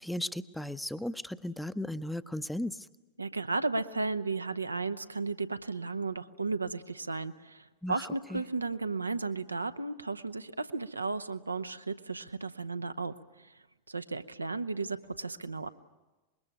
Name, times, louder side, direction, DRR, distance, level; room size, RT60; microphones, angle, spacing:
voice 1, 0.0-2.9 7.8-8.4, left 1 dB, 5° left, 14 dB, 0.7 m, -36 dB
voice 2, 3.2-13.6 13.9-15.7, right 3 dB, 80° right, 11 dB, 0.8 m, -34 dB
25.5 x 21.5 x 9.0 m, 1.2 s
figure-of-eight pair, 90°, 0 cm